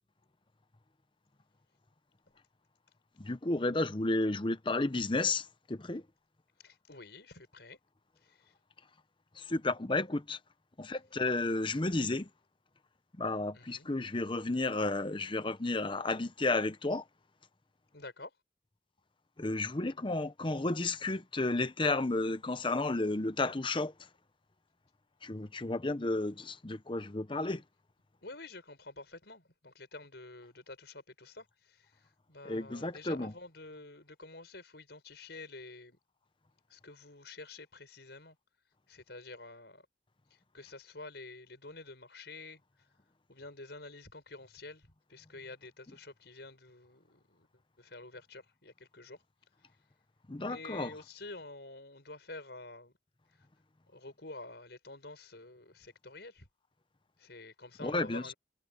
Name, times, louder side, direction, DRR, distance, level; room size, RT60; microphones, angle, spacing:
voice 1, 3.2-6.0 9.4-10.4 10.8-12.3 13.2-17.0 19.4-23.9 25.2-27.6 32.4-33.3 50.3-50.9 57.8-58.3, left 2 dB, 25° left, 0.8 m, -32 dB
voice 2, 6.6-7.8 8.2-8.4 13.5-13.9 17.9-18.3 28.2-31.9 32.3-36.0 36.7-38.4 38.9-39.9 40.5-42.6 43.3-47.5 47.8-49.2 50.5-52.9 53.9-56.5 57.2-58.3, left 2 dB, 60° left, 6.3 m, -49 dB
head